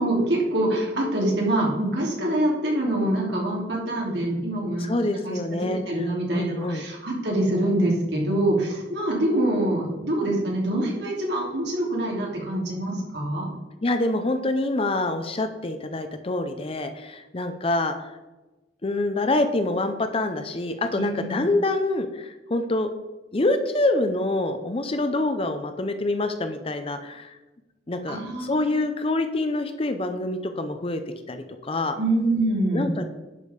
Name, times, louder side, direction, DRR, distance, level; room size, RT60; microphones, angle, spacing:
voice 1, 0.0-4.9 5.2-13.5 20.9-21.4 28.1-28.7 32.0-32.9, right 1 dB, 65° right, -2 dB, 3.0 m, -25 dB
voice 2, 4.8-6.1 6.3-6.9 13.8-18.1 18.8-22.9 23.3-27.4 27.9-31.0 31.3-32.0 32.7-33.0, left 2 dB, 30° left, 8 dB, 0.6 m, -26 dB
10.5 x 5.2 x 5.1 m, 1.1 s
head